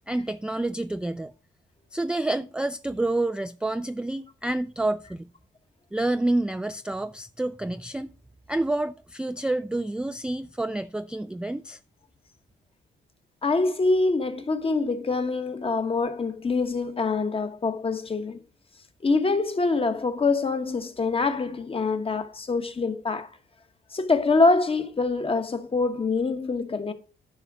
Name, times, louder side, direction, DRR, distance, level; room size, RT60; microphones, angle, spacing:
voice 1, 0.1-1.3 1.9-5.3 5.9-8.1 8.5-11.8, right 2 dB, 5° right, 0.3 m, -28 dB
voice 2, 13.4-18.4 19.0-23.3 23.9-26.9, left 3 dB, 30° left, 1.2 m, -25 dB
11.0 x 5.6 x 4.8 m
cardioid pair, 90°, 20 cm